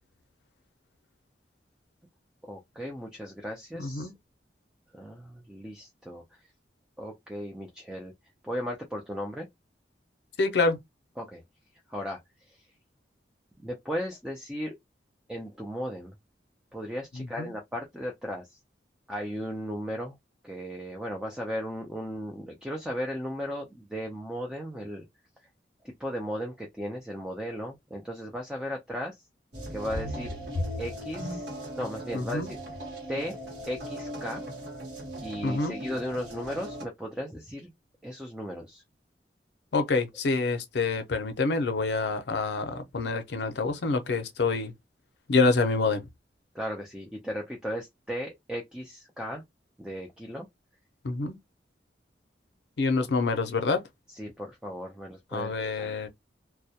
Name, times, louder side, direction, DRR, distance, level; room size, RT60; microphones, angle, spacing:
voice 1, 2.4-4.1 4.9-6.2 7.0-8.1 8.4-9.5 11.2-11.4 11.9-12.2 12.5-12.7 13.6-14.7 15.3-16.1 16.7-18.6 19.1-20.2 20.4-25.0 25.8-29.2 29.7-30.3 30.8-32.6 33.1-33.4 33.7-34.5 35.2-37.7 38.0-38.8 46.5-49.4 49.8-50.5 54.1-55.9, equal, 5° right, 0.3 m, -36 dB
voice 2, 3.7-4.1 10.4-10.8 17.2-17.5 32.1-32.5 35.4-35.8 39.7-44.7 45.3-46.1 51.0-51.4 52.8-53.8 55.3-56.1, left 3 dB, 70° left, 0.5 m, -27 dB
sound 1, 29.5-36.9, equal, 75° right, 1.1 m, -37 dB
2.2 x 2.1 x 2.7 m
head